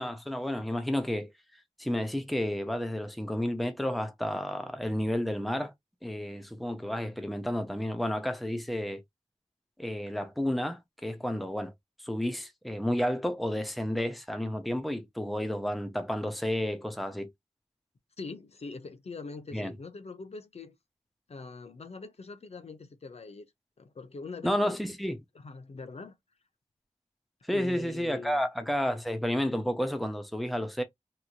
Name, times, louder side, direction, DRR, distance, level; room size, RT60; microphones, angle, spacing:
voice 1, 0.0-1.3 1.8-5.7 6.0-9.0 9.8-11.7 12.0-17.3 19.5-19.7 24.4-25.2 27.4-30.8, equal, ahead, 0.6 m, -31 dB
voice 2, 18.2-20.7 21.3-23.5 23.8-24.7 25.3-26.1 27.5-28.5, left 4 dB, 60° left, 0.6 m, -43 dB
3.0 x 2.6 x 2.4 m
wide cardioid pair, 90°, 12 cm